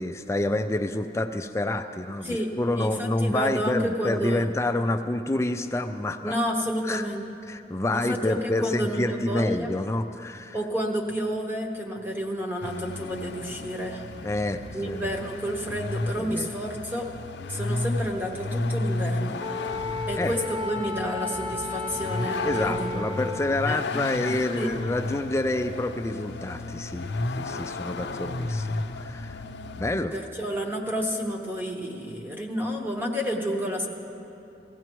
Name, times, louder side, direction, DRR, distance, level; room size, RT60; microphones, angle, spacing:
voice 1, 0.0-6.4 6.8-7.1 7.5-10.6 14.2-15.1 16.2-16.5 20.2-20.4 22.4-29.4 29.8-30.2, left 2 dB, 15° left, 8 dB, 0.4 m, -28 dB
voice 2, 2.2-4.4 6.2-7.3 7.9-9.7 10.5-14.0 14.7-17.1 17.4-19.4 20.1-23.1 23.7-23.8 24.6-24.7 30.1-33.9, equal, 10° right, 0 dB, 1.0 m, -30 dB
Vehicle, 12.6-29.8, left 2 dB, 70° left, 0.5 m, -33 dB
Wind instrument woodwind instrument, 19.4-23.7, left 3 dB, 25° right, 0.6 m, -33 dB
19.5 x 15.5 x 3.0 m, 2.8 s
head